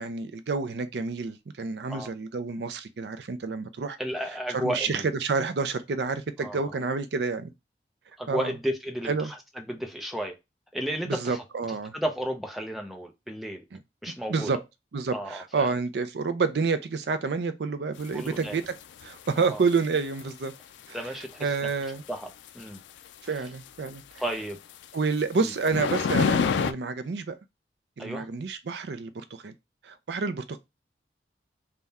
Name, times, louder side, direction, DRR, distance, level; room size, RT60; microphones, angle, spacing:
voice 1, 0.0-4.0 4.5-7.5 8.3-8.5 9.1-9.3 11.1-11.9 13.7-13.8 14.3-14.6 14.9-18.6 19.0-20.5 20.9-21.1 21.4-22.0 23.2-24.0 24.9-27.4 28.0-29.5 29.8-30.6, right 4 dB, 75° right, 0.4 m, -29 dB
voice 2, 4.0-5.1 6.4-6.7 8.2-10.4 10.7-11.4 11.9-13.6 14.0-14.5 15.1-15.7 18.1-18.6 19.4-19.6 20.9-21.5 22.1-22.3 22.5-22.8 24.2-24.6 28.0-28.3, equal, ahead, 0.6 m, -33 dB
sound 1, 18.0-19.1 19.7-19.8 20.2-20.3 21.7-21.8 22.5-22.6 23.9-24.0 24.8-24.9 25.7-26.7, left 6 dB, 90° left, 0.3 m, -25 dB
3.5 x 2.2 x 4.1 m
head